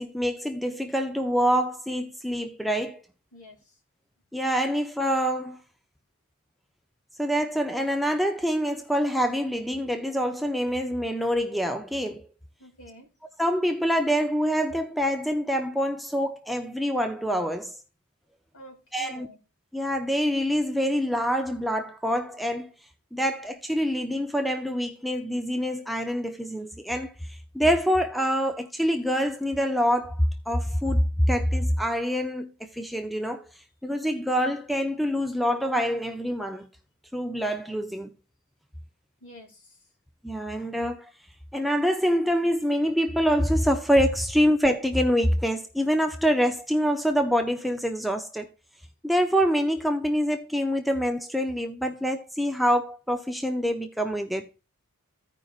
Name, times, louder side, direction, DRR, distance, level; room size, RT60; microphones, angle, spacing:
voice 1, 0.0-3.0 4.3-5.6 7.2-12.3 13.4-17.8 18.9-19.3 19.7-22.7 23.1-33.4 33.8-36.7 37.1-38.1 40.2-41.1 41.5-48.5 49.0-54.5, equal, ahead, 0.5 m, -25 dB
voice 2, 3.3-3.7 12.6-13.1 18.5-19.4 39.2-39.8, equal, 65° left, 2.6 m, -48 dB
15.5 x 5.2 x 2.4 m
head